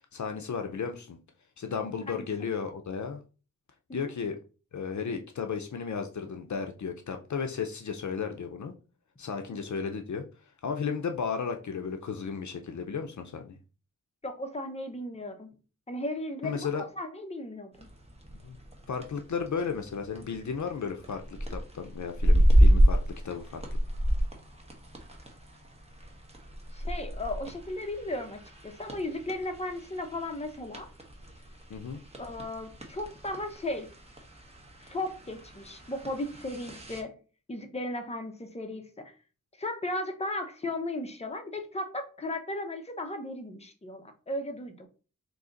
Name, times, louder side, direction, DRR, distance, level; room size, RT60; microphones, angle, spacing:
voice 1, 0.1-1.2 1.6-3.2 3.9-4.4 4.7-8.7 9.2-10.2 10.6-13.6 16.4-16.8 18.4-18.6 18.9-23.0 23.2-23.6 31.7-32.0, left 6 dB, 65° left, 5 dB, 0.5 m, -34 dB
voice 2, 2.1-2.5 3.9-4.0 9.5-9.6 14.2-15.5 15.9-17.9 26.7-30.9 32.2-33.9 34.8-37.1 37.5-39.1 39.6-44.9, left 1 dB, 20° left, 5 dB, 0.8 m, -36 dB
sound 1, 17.7-37.0, equal, 20° right, 1.0 m, -30 dB
3.8 x 2.8 x 3.8 m, 0.36 s
wide cardioid pair, 80°, 32 cm